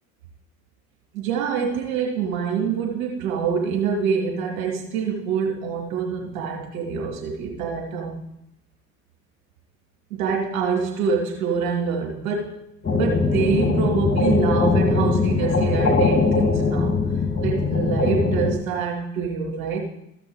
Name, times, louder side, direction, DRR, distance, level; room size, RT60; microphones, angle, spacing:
voice 1, 1.1-8.2 10.1-12.6 12.9-16.9 17.4-19.8, right 6 dB, 80° right, 0 dB, 2.8 m, -26 dB
sound 1, 12.8-18.5, left 3 dB, 25° left, 2.8 m, -21 dB
14.5 x 6.0 x 5.0 m, 0.79 s
hypercardioid pair, 60°, 41 cm